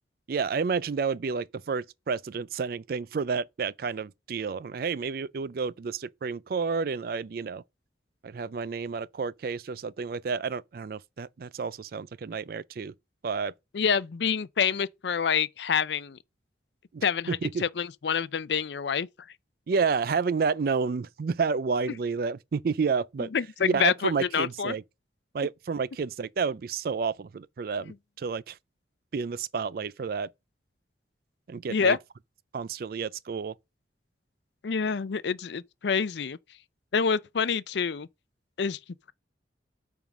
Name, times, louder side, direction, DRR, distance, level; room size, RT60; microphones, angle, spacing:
voice 1, 0.3-7.6 8.2-12.9 13.2-13.5 16.9-17.6 19.7-23.3 23.6-24.8 25.3-28.6 29.1-30.3 31.5-32.0 32.5-33.5, right 5 dB, 55° right, 0.4 m, -30 dB
voice 2, 13.7-16.2 17.0-19.1 23.3-24.7 31.7-32.0 34.6-36.4 36.9-38.1 38.6-38.8, left 6 dB, 75° left, 0.5 m, -27 dB
9.0 x 3.6 x 5.9 m
head